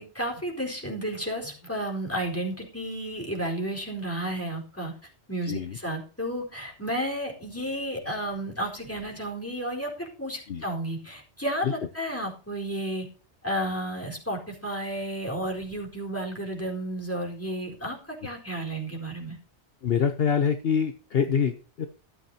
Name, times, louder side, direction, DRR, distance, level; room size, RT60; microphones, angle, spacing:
voice 1, 0.0-4.9 5.3-13.1 13.4-19.4, right 1 dB, 10° left, 0 dB, 4.3 m, -32 dB
voice 2, 19.8-21.9, left 7 dB, 60° left, 9 dB, 1.0 m, -25 dB
13.5 x 13.0 x 2.8 m, 0.39 s
omnidirectional pair, 1.2 m